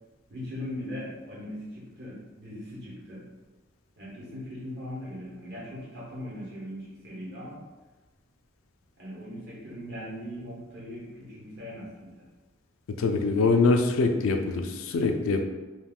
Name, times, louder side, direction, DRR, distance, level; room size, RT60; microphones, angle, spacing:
voice 1, 0.3-3.2 4.0-7.6 9.0-12.2, left 1 dB, 55° right, -6 dB, 1.0 m, -39 dB
voice 2, 13.0-15.4, left 3 dB, 80° left, 5 dB, 0.4 m, -24 dB
2.4 x 2.2 x 3.5 m, 1.2 s
head